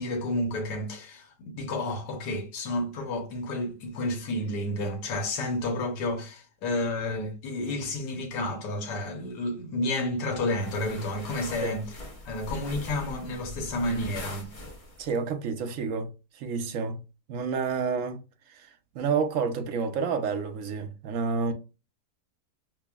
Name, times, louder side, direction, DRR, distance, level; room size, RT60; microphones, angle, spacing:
voice 1, 0.0-11.8 12.2-14.5, left 1 dB, 85° left, 1.5 m, -31 dB
sound 1, 10.5-15.2, left 1 dB, 35° left, 0.6 m, -41 dB
voice 2, 15.0-17.0 17.3-18.7 18.9-21.5, right 5 dB, 65° right, 0.9 m, -29 dB
5.9 x 2.1 x 2.3 m
omnidirectional pair, 1.8 m